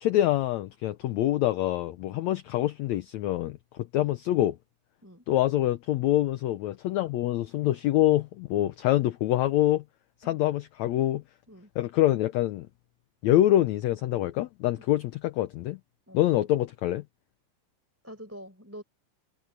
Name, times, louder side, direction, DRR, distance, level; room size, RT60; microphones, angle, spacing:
voice 1, 0.0-3.6 3.9-4.6 5.3-9.8 10.2-11.2 11.8-12.7 13.2-15.8 16.1-17.0, left 14 dB, 80° left, 1.6 m, -25 dB
voice 2, 18.0-18.8, equal, 5° right, 4.5 m, -46 dB
omnidirectional pair, 4.0 m